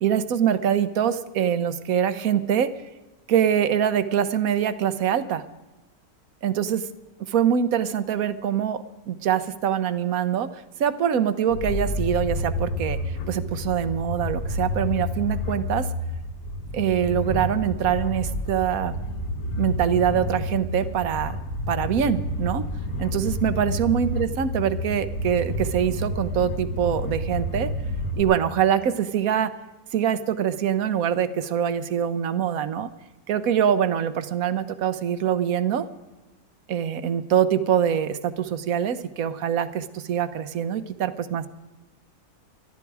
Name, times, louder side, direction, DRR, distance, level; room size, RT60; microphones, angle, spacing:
voice 1, 0.0-2.7 3.3-5.4 6.4-6.9 7.2-10.5 10.8-15.9 16.7-18.9 19.6-21.4 21.7-22.7 23.0-27.7 28.2-29.5 29.9-32.9 33.3-35.9 36.7-41.5, right 9 dB, 70° right, 13 dB, 1.3 m, -24 dB
sound 1, 11.5-28.2, left 1 dB, 70° left, 1.6 m, -29 dB
18.0 x 13.0 x 4.8 m, 1.1 s
omnidirectional pair, 1.6 m